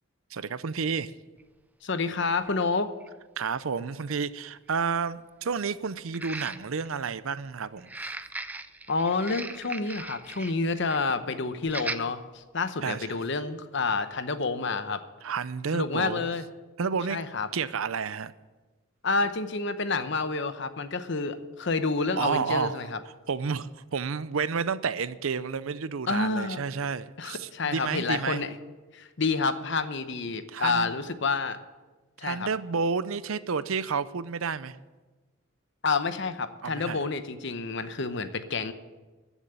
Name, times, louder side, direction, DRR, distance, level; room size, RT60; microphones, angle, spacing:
voice 1, 0.3-1.1 3.4-8.1 12.8-13.1 15.2-16.3 16.8-17.2 17.5-18.3 22.2-22.8 23.3-28.5 30.5-30.9 32.2-34.8 36.6-37.0, right 5 dB, 75° right, 15 dB, 0.6 m, -30 dB
sound 1, 1.4-1.5 2.5-2.6 3.0-3.1 6.1-6.9 7.8-10.6 10.9-11.1 11.7-12.0 12.6-12.7, right 2 dB, 10° right, 0.4 m, -38 dB
voice 2, 1.8-2.9 8.9-15.0 15.7-16.4 17.1-17.5 19.0-23.0 26.1-26.6 27.2-28.6 28.9-31.6 32.2-32.5 35.8-38.7, left 4 dB, 55° left, 11 dB, 0.9 m, -29 dB
14.5 x 7.2 x 8.6 m, 1.2 s
head